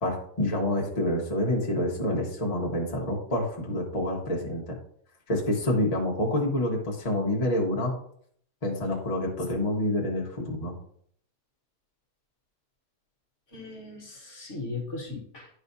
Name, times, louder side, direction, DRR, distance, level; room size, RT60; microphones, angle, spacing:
voice 1, 0.0-4.8 5.3-7.9 8.6-10.7, left 1 dB, 25° left, -3 dB, 1.3 m, -27 dB
voice 2, 13.5-15.6, left 3 dB, 50° left, -2 dB, 1.8 m, -38 dB
10.5 x 4.8 x 2.7 m, 0.64 s
omnidirectional pair, 1.7 m